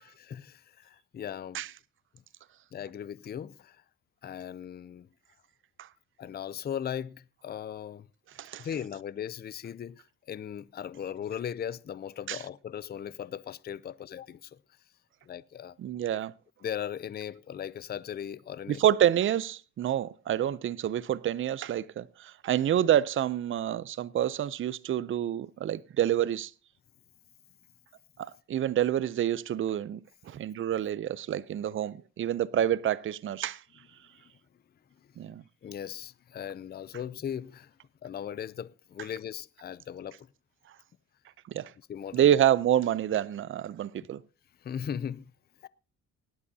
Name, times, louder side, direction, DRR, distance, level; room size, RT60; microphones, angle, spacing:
voice 1, 0.0-1.6 2.7-3.8 4.2-5.1 6.2-8.1 8.6-14.6 15.3-15.8 16.6-18.8 35.6-37.7 38.0-40.3 41.9-42.4 44.6-45.3 45.6-45.7, left 9 dB, 35° left, 0.5 m, -38 dB
voice 2, 15.8-16.3 18.7-26.5 28.2-30.0 30.3-33.6 35.2-35.4 41.5-41.7 42.1-44.2, right 11 dB, 45° right, 0.5 m, -28 dB
18.0 x 11.0 x 2.7 m
cardioid pair, 90°, 30 cm